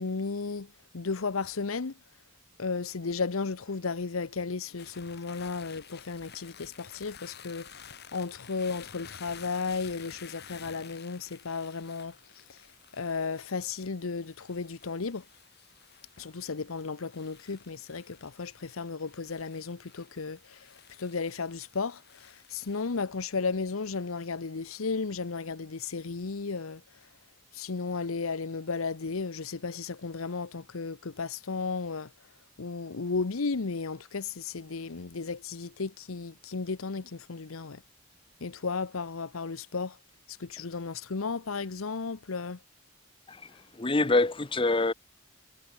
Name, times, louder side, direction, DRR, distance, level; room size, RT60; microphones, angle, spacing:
voice 1, 0.0-1.9 2.6-15.2 16.2-27.1 27.5-32.1 32.6-37.8 38.4-40.0 40.3-42.6 43.5-43.6, left 4 dB, 85° left, 0.9 m, -34 dB
sound 1, 4.8-23.0, left 8 dB, 50° left, 7.0 m, -52 dB
voice 2, 43.7-44.9, left 2 dB, 25° left, 0.8 m, -25 dB
head